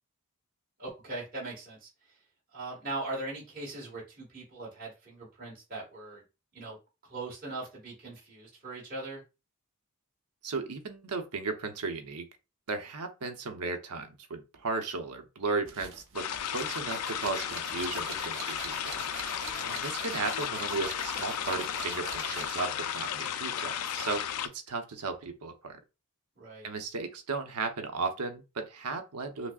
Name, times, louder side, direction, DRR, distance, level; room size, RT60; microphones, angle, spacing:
voice 1, 0.8-1.9 2.5-6.2 6.5-6.8 7.1-9.2 19.4-19.8 26.4-26.7, right 2 dB, 40° right, 1.7 m, -40 dB
voice 2, 10.4-12.3 12.7-19.1 19.7-24.2 24.5-25.8 26.6-29.5, right 3 dB, 90° right, 0.8 m, -35 dB
sound 1, 15.7-22.7, right 5 dB, 55° right, 0.7 m, -44 dB
sound 2, 16.1-24.5, left 9 dB, 85° left, 0.4 m, -34 dB
6.0 x 2.1 x 2.4 m
head